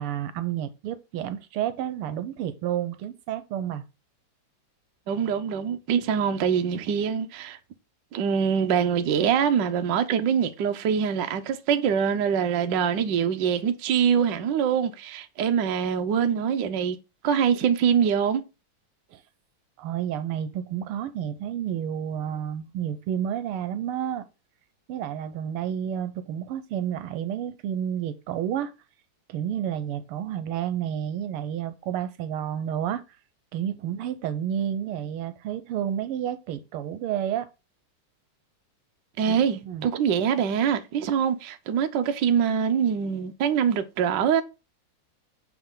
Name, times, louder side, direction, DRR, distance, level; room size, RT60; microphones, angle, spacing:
voice 1, 0.0-3.8 19.1-19.2 19.8-24.3 24.9-28.7 29.3-33.0 33.5-37.5 39.3-39.4 39.6-39.9, right 10 dB, 90° right, 1.6 m, -30 dB
voice 2, 5.1-7.6 8.1-17.0 17.2-18.4 39.2-44.4, right 7 dB, 65° right, 1.3 m, -24 dB
7.0 x 4.8 x 3.7 m
omnidirectional pair, 2.4 m